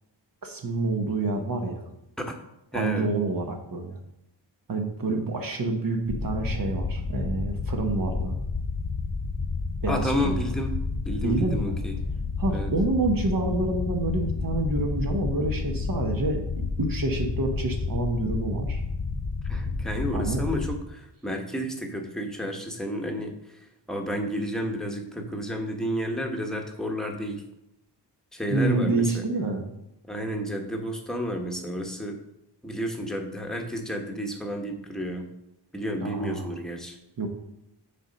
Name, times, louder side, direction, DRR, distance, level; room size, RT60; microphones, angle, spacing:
voice 1, 0.4-1.9 2.7-4.0 4.7-8.3 9.8-10.4 11.2-11.7 12.4-18.8 20.1-20.4 28.5-29.7 36.0-36.5 37.2-37.3, right 3 dB, 55° right, 4 dB, 1.1 m, -28 dB
voice 2, 2.7-3.1 9.9-10.8 11.0-11.9 12.5-12.7 19.5-23.4 23.9-27.4 28.3-29.2 30.1-32.2 32.6-35.3 35.7-37.0, equal, ahead, 2 dB, 1.0 m, -31 dB
sound 1, 6.1-20.8, left 4 dB, 45° left, 0.8 m, -30 dB
6.8 x 4.4 x 5.2 m, 0.84 s
wide cardioid pair, 125°, 42 cm